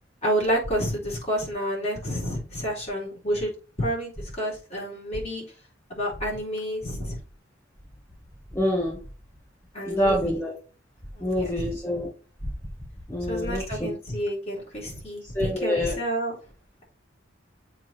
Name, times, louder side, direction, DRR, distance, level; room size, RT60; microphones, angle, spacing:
voice 1, 0.2-5.4 5.9-7.2 9.7-10.3 11.1-11.7 13.3-16.3, equal, 35° left, -3 dB, 3.5 m, -29 dB
voice 2, 8.5-9.0 9.9-10.5 11.2-12.1 13.1-13.9 15.3-16.0, equal, 15° left, -4 dB, 1.6 m, -26 dB
7.5 x 3.7 x 4.4 m, 0.35 s
head